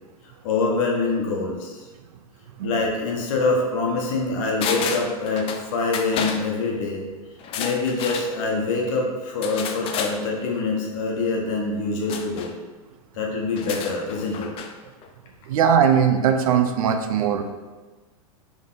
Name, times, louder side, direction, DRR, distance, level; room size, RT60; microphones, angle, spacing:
voice 1, 0.4-1.8 2.6-7.0 7.6-12.5 13.1-14.5, left 3 dB, 65° left, -1 dB, 1.2 m, -25 dB
sound 1, 4.6-5.6 5.9-6.4 7.4-8.3 9.4-10.2 12.1-12.5 13.5-14.7 15.0-15.1, left 6 dB, 30° left, 0.4 m, -30 dB
voice 2, 15.5-17.5, right 7 dB, 75° right, 7 dB, 0.5 m, -19 dB
3.7 x 3.5 x 4.0 m, 1.3 s
hypercardioid pair, 120°, 18 cm